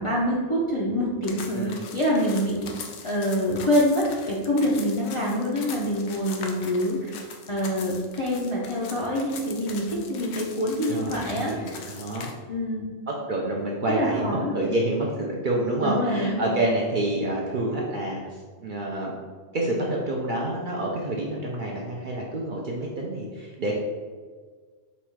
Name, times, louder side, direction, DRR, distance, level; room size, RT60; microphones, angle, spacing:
voice 1, 0.0-11.8 12.5-12.9 13.9-14.5 14.9-15.0 15.8-16.5, equal, 40° left, -6 dB, 0.4 m, -26 dB
sound 1, 1.2-12.3, left 5 dB, 70° left, 0.9 m, -41 dB
voice 2, 10.9-12.3 13.1-19.1 19.5-23.8, right 1 dB, 55° right, -2 dB, 0.6 m, -28 dB
4.1 x 2.3 x 4.4 m, 1.5 s
omnidirectional pair, 1.3 m